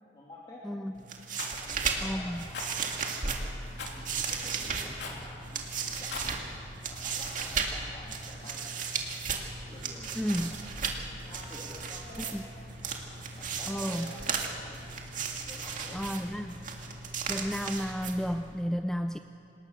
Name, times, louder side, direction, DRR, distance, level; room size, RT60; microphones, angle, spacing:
voice 1, 0.0-0.6 1.6-3.1 3.9-5.4 6.0-6.3 6.8-8.8 9.6-10.8 11.2-12.2 13.3-14.2 14.7-14.8 15.4-16.0, left 1 dB, 25° left, -5 dB, 2.8 m, -49 dB
voice 2, 0.6-1.0 2.0-2.5 10.1-10.6 12.2-12.4 13.7-14.1 15.9-16.6 17.3-19.2, equal, 5° left, 7 dB, 0.5 m, -32 dB
sound 1, 0.9-18.6, right 5 dB, 50° right, 2.2 m, -36 dB
Rattle, 1.4-1.6 2.5-2.7 3.8-4.0 5.0-5.3 6.0-6.3, left 4 dB, 80° left, 3.1 m, -39 dB
sound 2, 2.0-18.3, equal, 40° left, 7.4 m, -51 dB
27.0 x 19.0 x 6.6 m, 2.6 s
head